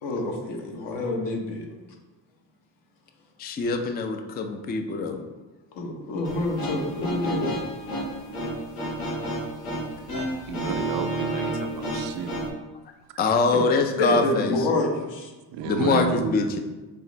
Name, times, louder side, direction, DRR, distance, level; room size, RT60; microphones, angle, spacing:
voice 1, 0.0-1.6 5.7-7.5 13.5-13.6 14.0-15.3, left 2 dB, 55° left, 1 dB, 1.0 m, -27 dB
voice 2, 3.4-5.2 13.2-14.7 15.6-16.6, left 4 dB, 20° left, 6 dB, 0.3 m, -24 dB
sound 1, 6.2-12.5, right 1 dB, 90° left, 1.1 m, -31 dB
voice 3, 10.5-12.4 15.5-16.4, right 8 dB, 50° right, 9 dB, 0.5 m, -31 dB
4.8 x 2.5 x 3.0 m, 1.2 s
supercardioid pair, 65°, 50 cm